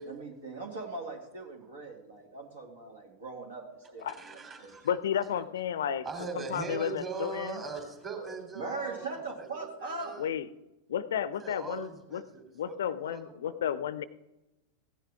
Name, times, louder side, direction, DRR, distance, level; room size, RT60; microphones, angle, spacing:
voice 1, 0.0-4.8 8.5-10.2, right 3 dB, 65° right, 2 dB, 2.6 m, -40 dB
voice 2, 4.1-4.9 6.0-10.3 11.3-12.8 13.0-13.6, right 4 dB, 25° right, 3 dB, 3.3 m, -41 dB
voice 3, 4.8-6.0 6.3-7.6 10.2-10.5 10.9-12.2 12.5-14.0, left 9 dB, 60° left, 16 dB, 0.5 m, -32 dB
16.5 x 10.5 x 3.6 m, 0.96 s
figure-of-eight pair, 90°, 0 cm